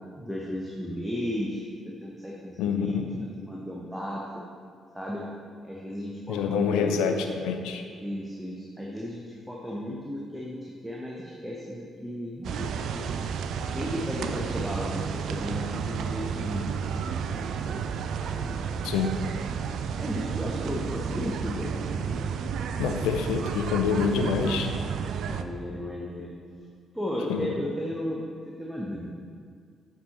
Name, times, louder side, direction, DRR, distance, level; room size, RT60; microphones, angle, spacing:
voice 1, 0.0-3.1 3.4-4.4 4.9-5.2 5.6-7.2 8.0-13.1 13.7-16.7 17.0-17.4 18.2-18.8 19.9-22.2 25.2-26.3 26.9-29.1, equal, 5° right, -4 dB, 1.1 m, -35 dB
voice 2, 2.6-3.0 6.3-7.8 18.8-19.1 22.8-24.7 27.3-27.5, left 6 dB, 70° left, 5 dB, 0.5 m, -26 dB
sound 1, 12.4-25.4, right 6 dB, 60° right, 0.3 m, -32 dB
8.0 x 4.6 x 4.3 m, 2.1 s
figure-of-eight pair, 40°, 0 cm